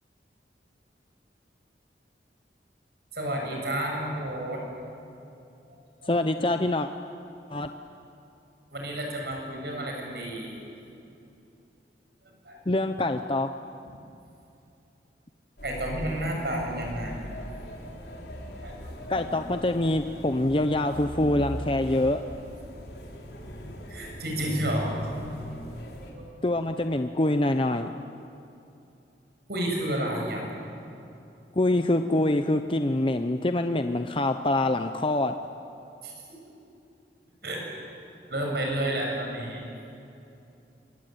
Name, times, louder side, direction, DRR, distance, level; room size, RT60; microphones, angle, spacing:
voice 1, 3.1-4.6 5.7-6.1 8.7-10.6 12.5-12.6 13.9-14.0 15.6-17.1 18.6-18.9 23.9-24.9 26.1-26.3 29.5-30.4 36.0-36.1 37.4-37.6 38.3-39.6, right 1 dB, 65° right, 0 dB, 7.5 m, -31 dB
voice 2, 6.0-6.9 7.5-7.7 12.7-13.5 19.1-22.2 26.4-27.9 31.6-35.3, left 1 dB, 30° left, 7 dB, 0.7 m, -25 dB
sound 1, 15.6-26.1, equal, 70° left, 4.7 m, -40 dB
27.0 x 23.5 x 9.3 m, 2.7 s
head